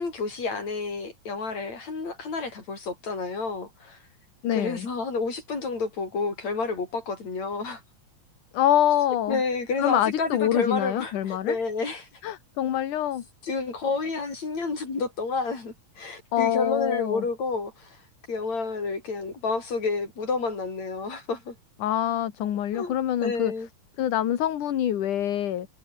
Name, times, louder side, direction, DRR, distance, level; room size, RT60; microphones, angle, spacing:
voice 1, 0.0-4.0 4.5-7.8 9.3-12.1 13.4-18.0 18.3-21.5 22.7-23.0 23.2-23.7, left 4 dB, 60° left, 7.3 m, -30 dB
voice 2, 4.4-4.9 8.5-9.4 9.8-11.6 12.2-13.2 16.3-17.2 21.8-23.5 24.0-25.7, left 11 dB, 80° left, 3.3 m, -25 dB
omnidirectional pair, 3.6 m